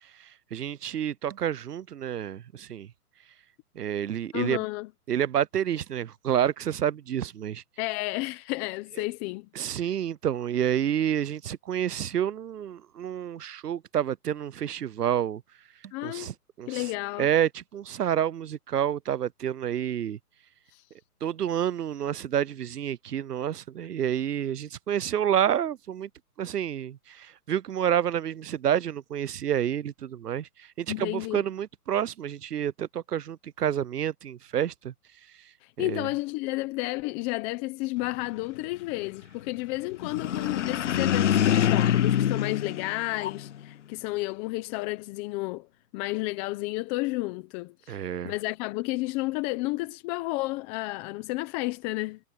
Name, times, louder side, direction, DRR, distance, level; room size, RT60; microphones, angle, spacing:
voice 1, 0.0-2.9 3.7-4.6 5.1-7.6 9.5-15.4 15.8-16.9 17.2-20.2 21.2-26.1 26.4-34.9 35.4-35.5 35.8-36.1 47.9-48.3, right 9 dB, 75° right, 0.8 m, -29 dB
voice 2, 4.3-4.9 7.8-9.5 15.9-16.3 16.7-17.3 20.7-20.8 30.9-31.4 35.6-45.7 45.9-52.2, left 21 dB, 15° left, 0.8 m, -32 dB
sound 1, 40.0-43.6, left 10 dB, 50° left, 1.1 m, -25 dB
hypercardioid pair, 150°, 47 cm